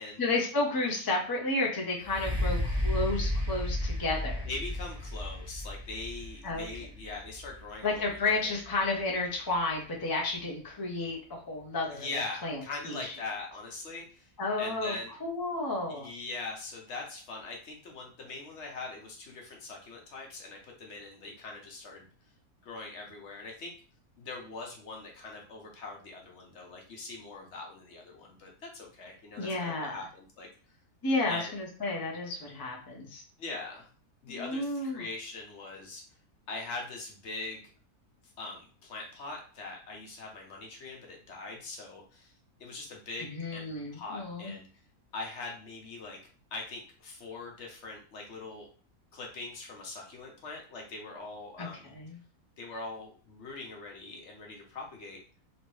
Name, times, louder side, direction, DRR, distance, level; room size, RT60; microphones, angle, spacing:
voice 1, 0.2-4.5 6.4-6.7 7.8-12.1 12.4-12.6 12.9-13.1 14.4-14.9 15.2-16.1 29.4-30.0 31.0-33.2 34.3-35.0 43.2-44.5 51.6-52.2, left 2 dB, 35° left, -2 dB, 0.3 m, -32 dB
sound 1, 2.0-9.7 10.4-10.5, left 1 dB, 5° right, 0.7 m, -34 dB
voice 2, 4.5-8.6 11.9-14.3 14.6-15.1 15.9-22.1 22.6-23.7 24.2-30.5 31.3-31.5 33.4-33.9 34.2-36.0 36.5-37.6 38.4-42.3 42.6-44.7 45.1-46.2 46.5-48.7 49.1-51.9 52.6-55.2, left 3 dB, 55° left, 0 dB, 1.0 m, -42 dB
3.1 x 2.8 x 3.0 m, 0.41 s
omnidirectional pair, 1.6 m